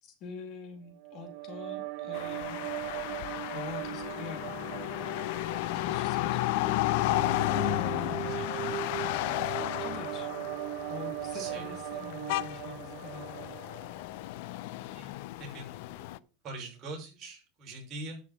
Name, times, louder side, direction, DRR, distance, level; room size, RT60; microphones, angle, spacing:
voice 1, 0.0-2.6 3.5-6.9 7.6-8.3 9.5-10.3 10.9-13.6 16.1-16.3, left 5 dB, 45° left, 5 dB, 2.8 m, -45 dB
sound 1, 1.0-14.3, right 13 dB, 60° right, 1.0 m, -39 dB
sound 2, 2.1-16.2, left 18 dB, 65° left, 0.5 m, -33 dB
voice 2, 15.4-16.1 16.4-18.2, right 2 dB, 35° right, 0 dB, 6.0 m, -43 dB
12.0 x 6.4 x 4.3 m, 0.32 s
supercardioid pair, 130°, 0 cm